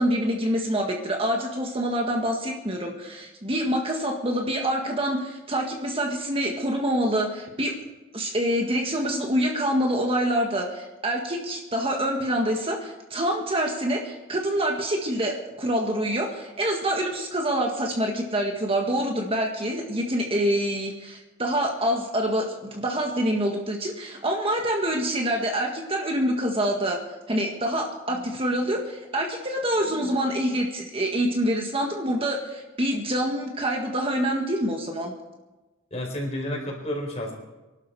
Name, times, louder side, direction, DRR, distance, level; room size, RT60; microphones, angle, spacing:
voice 1, 0.0-7.7 8.1-27.0 27.3-35.1, right 1 dB, 30° right, 1 dB, 1.8 m, -26 dB
voice 2, 35.9-37.3, left 1 dB, 30° left, 0 dB, 4.7 m, -30 dB
24.0 x 12.0 x 4.9 m, 1.1 s
head